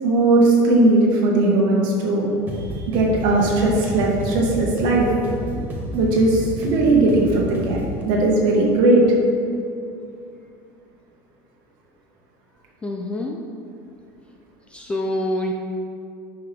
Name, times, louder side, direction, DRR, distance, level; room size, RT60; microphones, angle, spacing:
voice 1, 0.0-2.4 2.9-5.1 5.5-5.6 5.9-9.0, right 2 dB, 45° right, -2 dB, 1.7 m, -18 dB
sound 1, 2.5-8.0, equal, 20° right, 1.1 m, -30 dB
voice 2, 12.8-13.4 14.7-15.5, left 1 dB, 10° left, 1 dB, 0.3 m, -26 dB
10.5 x 5.7 x 3.6 m, 2.4 s
cardioid pair, 175°, 10 cm